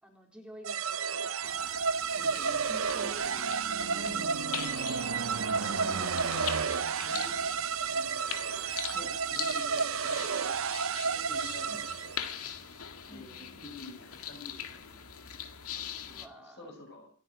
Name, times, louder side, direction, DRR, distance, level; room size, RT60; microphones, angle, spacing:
voice 1, 0.0-2.0 2.7-4.4 5.7-6.2 7.1-7.6 11.7-11.8 13.1-13.6 16.0-16.7, equal, 5° right, 1 dB, 3.8 m, -50 dB
sound 1, 0.6-12.3, right 6 dB, 65° right, 0.7 m, -32 dB
sound 2, 1.4-16.3, left 9 dB, 85° left, 2.1 m, -42 dB
voice 2, 2.1-2.9 3.7-4.1 5.1-6.6 7.0-7.6 7.9-8.6 8.9-10.8 11.0-12.2 12.6-15.0 15.7-17.1, left 2 dB, 50° left, 3 dB, 7.4 m, -49 dB
sound 3, 2.9-7.9, right 4 dB, 90° right, 1.1 m, -38 dB
27.5 x 9.5 x 4.9 m, 0.37 s
head